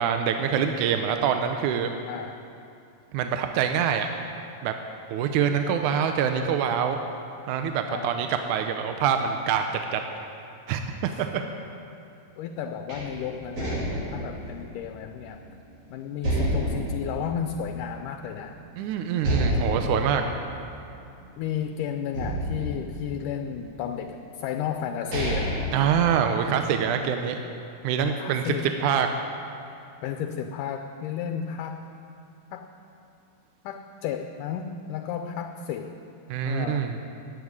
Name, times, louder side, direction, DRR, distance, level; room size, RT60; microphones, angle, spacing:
voice 1, 0.0-1.9 3.1-4.1 4.6-4.7 5.1-7.0 7.5-9.6 9.9-10.0 10.7-11.4 18.8-20.2 25.7-27.4 27.8-28.5 28.8-29.1 36.3-37.0, right 8 dB, 75° right, 6 dB, 2.0 m, -25 dB
voice 2, 2.1-2.4 7.9-8.2 11.0-11.2 12.4-13.8 14.1-15.4 15.9-18.6 21.4-25.6 28.2-28.7 30.0-31.9 32.5-32.7 33.6-36.0 36.4-36.9, left 8 dB, 80° left, 7 dB, 2.1 m, -33 dB
sound 1, 12.9-15.7 16.2-18.2 18.5-18.6 19.2-21.6 22.1-23.7 24.5-24.6 24.9-26.7, equal, 55° right, 4.6 m, -30 dB
14.5 x 8.7 x 9.6 m, 2.6 s
omnidirectional pair, 3.9 m